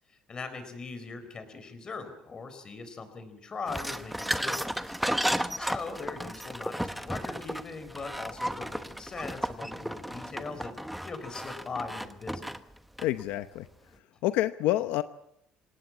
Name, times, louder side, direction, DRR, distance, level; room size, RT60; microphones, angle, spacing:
voice 1, 0.1-5.0 5.5-10.7 11.0-12.5, left 4 dB, 30° left, 10 dB, 4.2 m, -40 dB
sound 1, 3.7-13.2, equal, ahead, 1.0 m, -34 dB
voice 2, 13.0-13.7 14.2-15.0, left 15 dB, 85° left, 11 dB, 0.8 m, -27 dB
26.5 x 18.0 x 7.4 m, 0.76 s
cardioid pair, 130°, 3 cm